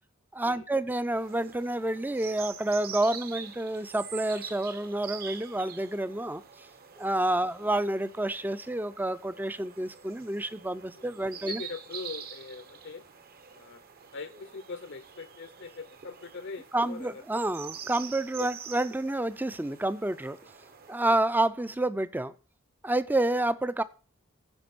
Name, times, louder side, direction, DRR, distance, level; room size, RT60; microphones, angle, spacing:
voice 1, 0.3-6.4 7.0-11.6 16.7-20.4 20.9-22.3 22.8-23.8, right 1 dB, 10° right, 0.4 m, -29 dB
sound 1, 1.2-21.0, right 7 dB, 45° right, 0.9 m, -45 dB
voice 2, 10.9-13.0 13.5-13.8 14.1-17.5 18.4-18.5 21.0-21.2 23.1-23.2, left 4 dB, 55° left, 0.7 m, -42 dB
15.0 x 5.2 x 6.0 m
head